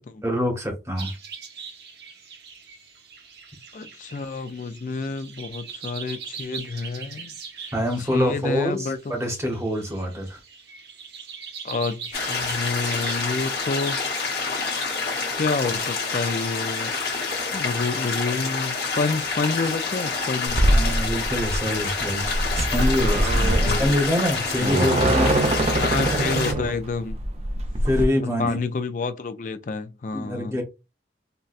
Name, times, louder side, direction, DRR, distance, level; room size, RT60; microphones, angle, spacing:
voice 1, 0.2-1.1 7.7-10.4 20.7-25.5 27.8-28.6 30.1-30.6, left 1 dB, 15° right, 0.9 m, -25 dB
sound 1, 1.0-16.0, right 6 dB, 70° right, 0.9 m, -41 dB
voice 2, 3.7-7.3 8.0-9.1 11.6-14.0 15.4-16.9 17.5-20.6 23.5-23.9 24.7-25.2 25.8-27.2 28.2-30.6, left 4 dB, 45° left, 0.3 m, -29 dB
sound 2, 12.1-26.5, left 4 dB, 65° left, 1.0 m, -28 dB
sound 3, 20.5-28.0, right 1 dB, 35° right, 0.4 m, -23 dB
4.0 x 2.2 x 2.4 m
head